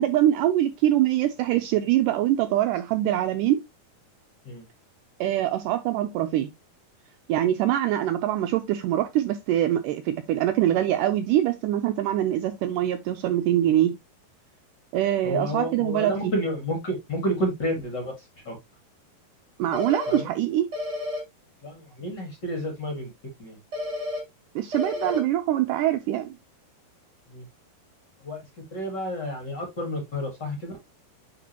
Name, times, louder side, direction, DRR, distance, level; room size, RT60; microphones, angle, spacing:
voice 1, 0.0-3.6 5.2-6.5 7.3-13.9 14.9-16.3 19.6-20.7 24.6-26.3, right 12 dB, 90° right, 1.8 m, -24 dB
voice 2, 15.2-18.1 18.4-18.5 20.1-20.2 21.6-23.1 23.4-23.5 27.3-27.4 28.2-28.4 28.7-30.7, equal, 45° left, 1.6 m, -30 dB
sound 1, 19.7-20.2 20.7-21.2 23.7-24.2 24.7-25.2, left 2 dB, 35° right, 2.3 m, -31 dB
10.0 x 3.7 x 2.8 m
omnidirectional pair, 4.3 m